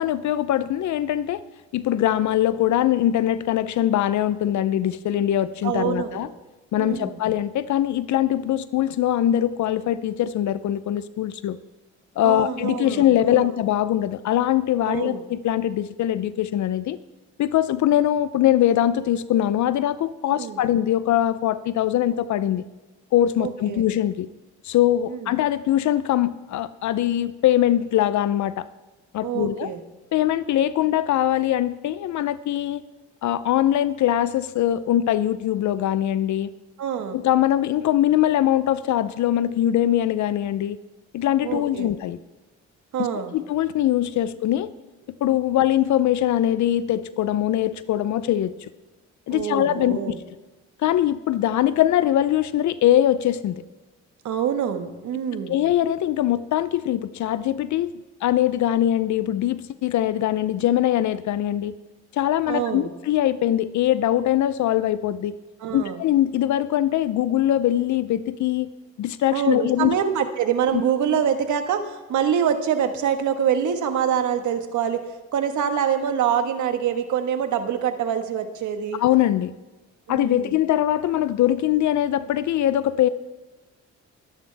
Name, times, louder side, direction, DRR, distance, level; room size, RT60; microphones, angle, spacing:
voice 1, 0.0-1.4 1.7-6.3 6.7-11.6 12.2-17.0 17.4-22.6 23.1-24.3 24.6-28.7 29.1-29.7 30.1-32.8 33.2-36.5 37.1-40.8 41.1-42.2 43.0-43.1 43.3-44.7 45.2-48.7 49.3-50.1 50.8-53.6 55.5-57.9 58.2-61.7 62.1-65.4 65.7-68.7 69.0-69.9 70.7-70.8 79.0-79.5 80.1-83.1, left 12 dB, 70° left, 15 dB, 0.6 m, -22 dB
voice 2, 5.6-6.3 6.8-7.2 12.2-13.5 14.8-15.2 20.3-20.6 23.4-23.9 25.1-25.3 29.2-29.8 36.8-37.2 41.4-41.9 42.9-43.3 49.3-50.2 54.2-55.6 62.5-62.9 65.6-66.0 69.3-75.0 75.3-79.0 80.1-80.5, right 8 dB, 75° right, 7 dB, 1.6 m, -25 dB
23.5 x 10.0 x 3.5 m, 1.2 s
cardioid pair, 90°, 30 cm